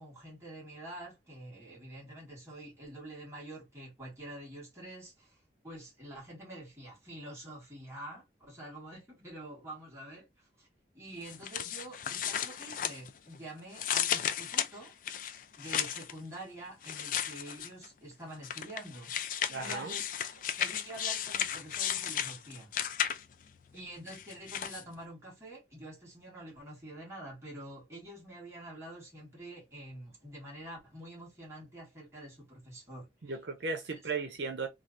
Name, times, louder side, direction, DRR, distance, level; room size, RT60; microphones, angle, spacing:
voice 1, 0.0-10.7 10.9-14.9 15.5-20.0 20.4-22.7 23.7-33.4 33.9-34.0, right 1 dB, 15° right, 1.6 m, -47 dB
sound 1, 11.3-13.4 13.7-16.1 16.8-17.9 18.4-23.4 24.1-24.8, left 9 dB, 45° left, 0.3 m, -34 dB
voice 2, 19.5-19.9 33.2-34.7, right 4 dB, 75° right, 0.7 m, -36 dB
3.1 x 2.4 x 2.5 m
head